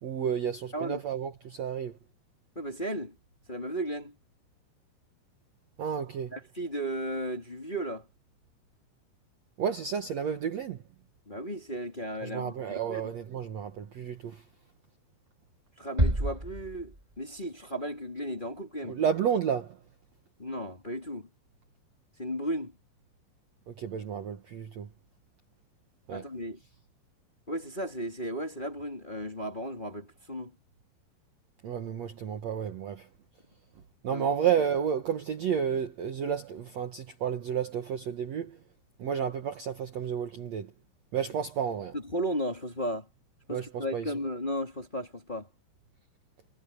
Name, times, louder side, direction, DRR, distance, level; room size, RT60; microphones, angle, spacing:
voice 1, 0.0-2.0 5.8-6.3 9.6-10.8 12.2-14.4 18.8-19.8 23.7-24.9 26.1-26.2 31.6-33.1 34.0-38.6 39.0-40.7 41.1-41.9 43.5-44.1, right 8 dB, 80° right, 1.5 m, -31 dB
voice 2, 2.5-3.1 3.5-4.1 6.3-8.1 11.3-13.1 15.8-19.0 20.4-21.3 22.2-22.7 26.1-26.6 27.5-30.5 34.0-34.3 41.9-43.1 43.5-45.5, equal, 15° left, 1.9 m, -35 dB
sound 1, 16.0-17.4, right 1 dB, 15° right, 1.7 m, -29 dB
omnidirectional pair, 5.2 m